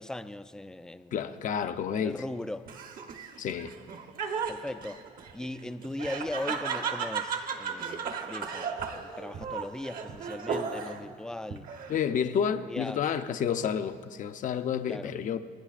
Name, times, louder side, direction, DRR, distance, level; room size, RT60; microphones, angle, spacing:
voice 1, 0.0-1.4 2.0-2.7 4.5-5.0 5.3-11.7 12.7-13.0 14.9-15.1, left 1 dB, 5° left, 0.4 m, -38 dB
voice 2, 1.1-2.2 3.4-3.7 11.9-15.4, left 8 dB, 50° left, 0.6 m, -30 dB
Laughter, 2.7-11.1 11.5-12.2, right 6 dB, 55° right, 1.0 m, -35 dB
27.0 x 11.0 x 2.5 m
cardioid pair, 110°, 17 cm